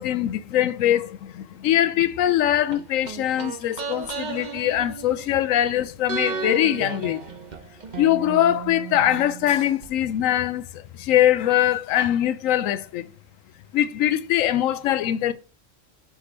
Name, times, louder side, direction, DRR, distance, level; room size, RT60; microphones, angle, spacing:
voice 1, 0.0-7.2 8.0-13.1 13.7-15.3, left 12 dB, 90° left, 1.0 m, -22 dB
sound 1, 2.7-5.7 6.1-9.9 10.2-10.3, right 5 dB, 40° right, 0.8 m, -35 dB
6.0 x 3.2 x 5.8 m
omnidirectional pair, 1.3 m